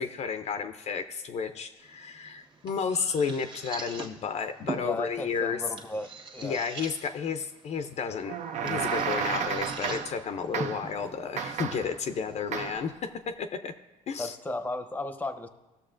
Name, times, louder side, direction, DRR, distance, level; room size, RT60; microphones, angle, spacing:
voice 1, 0.0-5.6 6.4-8.3 8.6-13.7 14.1-14.4, left 6 dB, 50° left, 8 dB, 0.5 m, -32 dB
sound 1, 1.8-12.8, right 3 dB, 35° right, 1.3 m, -44 dB
voice 2, 4.8-6.6 14.2-15.5, left 2 dB, 10° left, 8 dB, 0.7 m, -35 dB
sound 2, 8.3-10.2 10.5-11.0 11.4-12.0 12.5-12.9, right 7 dB, 55° right, 0.6 m, -32 dB
17.0 x 6.6 x 2.5 m, 1.1 s
cardioid pair, 95°, 15 cm